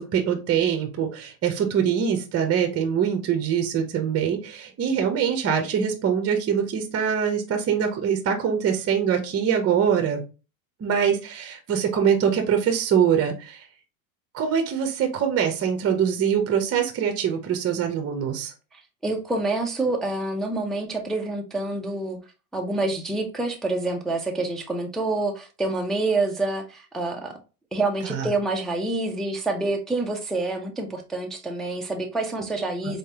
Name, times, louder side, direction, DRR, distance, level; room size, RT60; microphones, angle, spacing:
voice 1, 0.0-10.2 10.8-13.7 14.3-18.5 28.0-28.3 32.8-32.9, right 8 dB, 30° right, 0.9 m, -23 dB
voice 2, 18.7-22.2 22.5-27.4 27.7-33.0, right 2 dB, ahead, 0.3 m, -27 dB
4.1 x 3.2 x 2.8 m
supercardioid pair, 115°, 47 cm